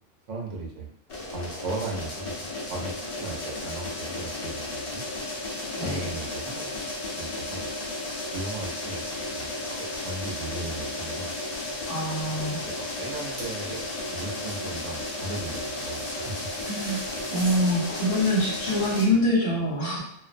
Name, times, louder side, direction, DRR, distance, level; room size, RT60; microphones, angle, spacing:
voice 1, 0.3-0.9 1.3-5.1 5.8-6.7 7.2-7.7 8.3-9.0 9.3-11.3 12.3-13.9 14.1-16.5, right 2 dB, 75° right, -2 dB, 0.9 m, -37 dB
sound 1, 1.1-19.1, left 2 dB, 85° left, 0.3 m, -34 dB
sound 2, 11.2-17.8, right 1 dB, 45° right, 0.8 m, -46 dB
voice 2, 11.9-12.6 16.7-17.0 17.3-20.0, left 1 dB, 55° left, -5 dB, 0.9 m, -25 dB
2.4 x 2.1 x 2.4 m, 0.78 s
omnidirectional pair, 1.3 m